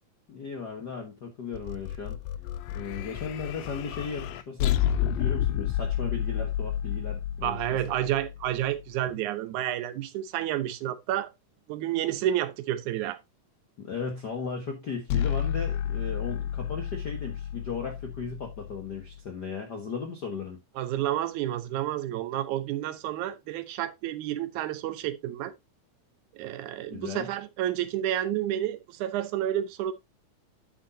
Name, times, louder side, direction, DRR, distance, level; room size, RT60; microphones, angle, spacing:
voice 1, 0.3-2.2 2.7-7.6 13.8-20.6 26.9-27.3, left 5 dB, 45° left, 1.4 m, -36 dB
sound 1, 1.5-8.8 15.1-19.2, left 10 dB, 85° left, 1.4 m, -31 dB
voice 2, 7.4-11.3 11.7-13.2 20.8-25.5 26.3-29.9, right 12 dB, 75° right, 2.3 m, -30 dB
8.9 x 8.2 x 2.7 m
omnidirectional pair, 3.6 m